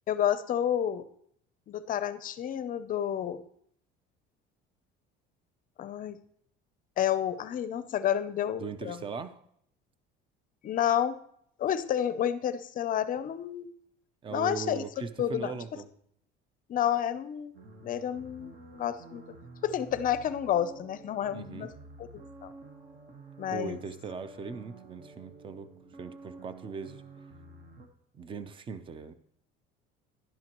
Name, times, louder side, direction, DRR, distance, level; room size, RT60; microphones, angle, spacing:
voice 1, 0.1-1.1 1.7-3.4 5.8-6.2 7.0-9.0 10.6-11.2 11.6-13.7 14.3-14.8 15.2-15.5 16.7-17.5 17.8-19.2 19.6-21.7 22.0-22.5 23.4-23.8, left 10 dB, 40° left, 13 dB, 0.6 m, -30 dB
voice 2, 8.6-9.4 14.2-15.9 21.3-21.7 23.5-25.7 26.0-27.0 28.1-29.1, right 5 dB, 25° right, 12 dB, 0.6 m, -39 dB
sound 1, 17.5-27.9, right 2 dB, 45° right, 1.5 m, -50 dB
11.5 x 10.5 x 3.0 m, 0.69 s
cardioid pair, 130°, 21 cm